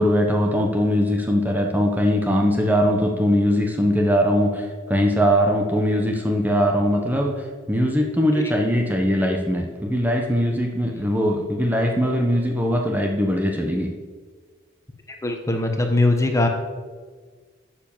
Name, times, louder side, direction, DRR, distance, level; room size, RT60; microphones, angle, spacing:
voice 1, 0.0-13.9, equal, 10° right, 1 dB, 1.1 m, -21 dB
voice 2, 15.2-16.5, left 2 dB, 15° left, 4 dB, 1.3 m, -20 dB
12.5 x 7.3 x 7.3 m, 1.5 s
head